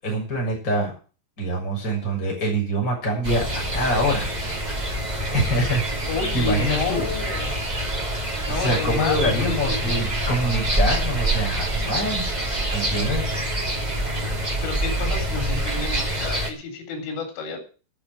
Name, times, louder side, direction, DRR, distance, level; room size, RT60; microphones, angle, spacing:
voice 1, 0.0-0.9 1.4-4.3 5.3-7.1 8.4-12.3 12.7-13.2, right 1 dB, 15° left, -3 dB, 7.0 m, -25 dB
sound 1, 3.2-16.5, right 1 dB, 85° right, 0.3 m, -26 dB
voice 2, 6.1-7.6 8.5-10.0 14.6-17.7, left 5 dB, 70° left, 5 dB, 6.1 m, -30 dB
12.0 x 7.7 x 9.7 m, 0.37 s
omnidirectional pair, 5.9 m